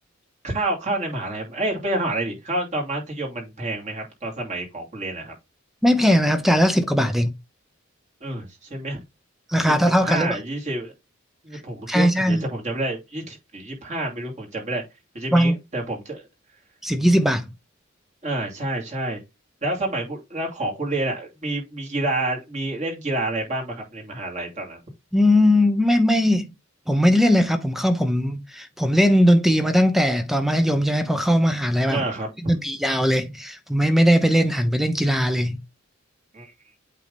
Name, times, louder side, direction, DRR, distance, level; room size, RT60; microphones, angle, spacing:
voice 1, 0.4-5.3 8.2-9.0 10.0-10.9 11.4-14.8 15.1-16.3 18.2-19.2 19.6-24.8 31.9-32.3 36.3-36.5, right 2 dB, 35° right, 2.6 m, -28 dB
voice 2, 5.8-7.3 9.5-10.4 11.9-12.5 15.3-15.5 16.8-17.5 25.1-26.5 26.9-32.0 32.4-35.6, equal, ahead, 0.7 m, -19 dB
8.2 x 3.9 x 3.5 m
head